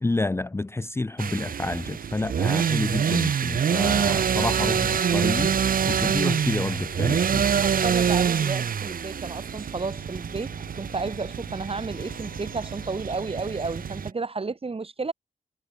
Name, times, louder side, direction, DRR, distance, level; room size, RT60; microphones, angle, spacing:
voice 1, 0.0-5.6 5.8-7.5, left 2 dB, 15° left, 0.6 m, -29 dB
sound 1, 1.2-14.1, right 7 dB, 80° right, 1.1 m, -26 dB
sound 2, 5.3-14.1, left 6 dB, 65° left, 6.3 m, -49 dB
voice 2, 7.5-15.1, right 4 dB, 40° right, 4.9 m, -32 dB
wide cardioid pair, 90°, 14 cm